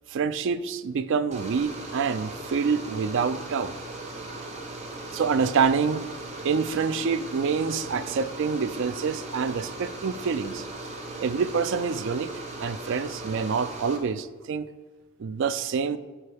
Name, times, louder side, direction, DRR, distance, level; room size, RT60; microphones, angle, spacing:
voice 1, 0.1-3.7 5.1-6.1 6.4-10.6 11.2-12.3 12.6-14.7 15.2-16.0, right 5 dB, 55° right, 13 dB, 0.3 m, -26 dB
sound 1, 1.3-14.0, right 2 dB, 30° right, 0.8 m, -38 dB
9.8 x 4.5 x 3.4 m, 1.4 s
head